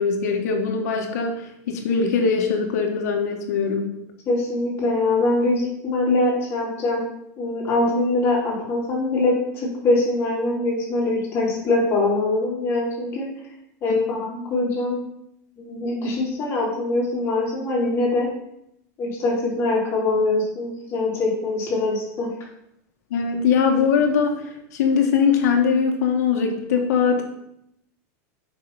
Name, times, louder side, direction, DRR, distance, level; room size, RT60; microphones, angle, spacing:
voice 1, 0.0-3.9 23.1-27.2, left 6 dB, 75° left, 3 dB, 1.7 m, -21 dB
voice 2, 4.3-7.0 7.4-13.3 13.8-15.0 15.6-18.3 19.0-22.3, left 2 dB, 30° left, -6 dB, 3.8 m, -23 dB
8.0 x 6.0 x 4.9 m, 0.79 s
supercardioid pair, 155°, 9 cm